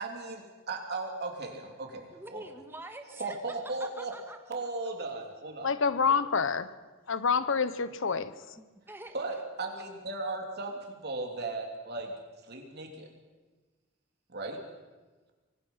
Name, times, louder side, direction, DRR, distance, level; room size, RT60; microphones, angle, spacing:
voice 1, 0.0-2.4 3.2-4.1 4.5-5.7 9.1-12.1 12.4-13.1 14.3-14.6, right 3 dB, 55° right, 2 dB, 3.3 m, -36 dB
voice 2, 2.1-4.4 8.2-8.3 8.6-9.2, right 2 dB, 10° right, 6 dB, 1.6 m, -46 dB
voice 3, 5.6-6.6 7.1-8.3, left 5 dB, 70° left, 14 dB, 0.9 m, -27 dB
24.5 x 18.5 x 5.7 m, 1.3 s
head